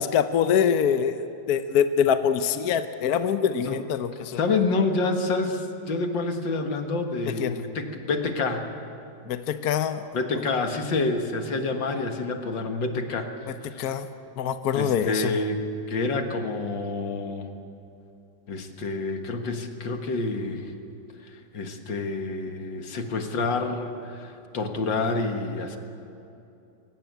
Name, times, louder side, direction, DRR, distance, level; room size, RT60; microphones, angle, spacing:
voice 1, 0.0-4.4 7.4-7.6 9.3-10.0 13.8-14.1 14.4-15.4, left 8 dB, 65° left, 10 dB, 1.2 m, -24 dB
voice 2, 4.4-8.7 10.1-13.3 13.7-13.8 14.8-15.6 15.9-17.5 18.5-20.7 21.5-25.8, left 3 dB, 85° left, 5 dB, 2.4 m, -28 dB
23.0 x 17.0 x 9.3 m, 2.7 s
omnidirectional pair, 2.0 m